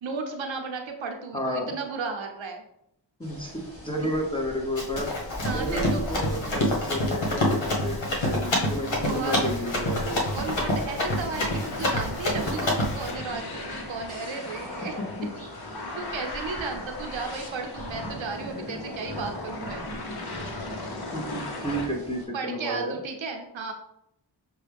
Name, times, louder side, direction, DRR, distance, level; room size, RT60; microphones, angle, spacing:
voice 1, 0.0-2.6 5.4-6.1 8.8-9.4 10.3-14.9 16.0-19.9 22.3-23.7, right 4 dB, 90° right, 3 dB, 0.8 m, -34 dB
voice 2, 1.3-1.7 3.2-5.1 5.5-10.2 15.2-15.3 21.1-23.0, equal, 10° left, -1 dB, 0.9 m, -31 dB
sound 1, 3.2-22.3, equal, 30° left, 1.6 m, -44 dB
Run, 4.8-13.1, left 1 dB, 80° left, 1.1 m, -27 dB
sound 2, 5.3-21.9, left 1 dB, 55° left, 1.0 m, -38 dB
6.3 x 2.3 x 3.4 m, 0.78 s
wide cardioid pair, 80°, 45 cm